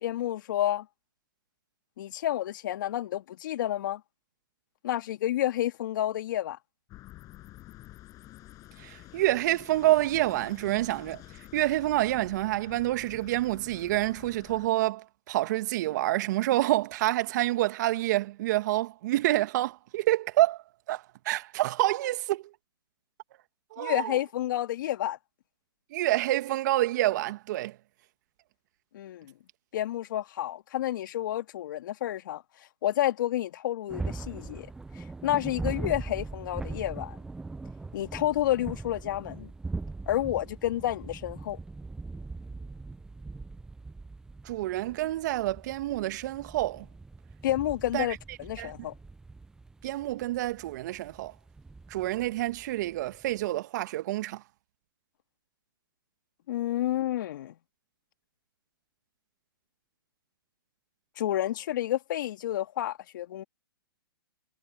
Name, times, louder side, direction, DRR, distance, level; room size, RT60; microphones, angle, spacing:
voice 1, 0.0-0.9 2.0-4.0 4.8-6.6 23.8-25.2 28.9-29.3 29.7-32.4 32.8-34.7 35.0-37.2 37.9-39.5 40.1-41.6 47.4-48.9 56.5-57.6 61.2-63.4, left 13 dB, 55° left, 2.0 m, -30 dB
sound 1, 6.9-14.7, left 16 dB, 25° left, 6.8 m, -49 dB
voice 2, 8.8-11.2 11.5-22.4 23.7-24.2 25.9-27.7 44.4-46.9 47.9-48.7 49.8-51.3 51.9-54.4, right 16 dB, 50° right, 1.6 m, -28 dB
sound 2, 33.9-53.4, right 3 dB, 5° right, 0.6 m, -41 dB
hypercardioid pair, 130°, 13 cm